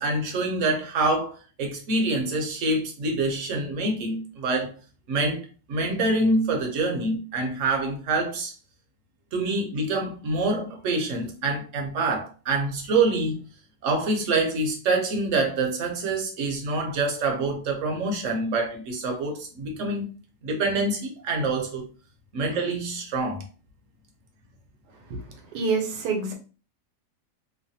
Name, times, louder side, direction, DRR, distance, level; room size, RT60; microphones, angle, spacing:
voice 1, 0.0-4.7 5.1-8.5 9.3-13.4 13.8-20.0 20.4-21.9 22.3-23.4, right 2 dB, 60° right, 0.9 m, -26 dB
voice 2, 25.5-26.3, right 4 dB, 80° right, 1.3 m, -26 dB
3.2 x 2.1 x 2.6 m
omnidirectional pair, 1.7 m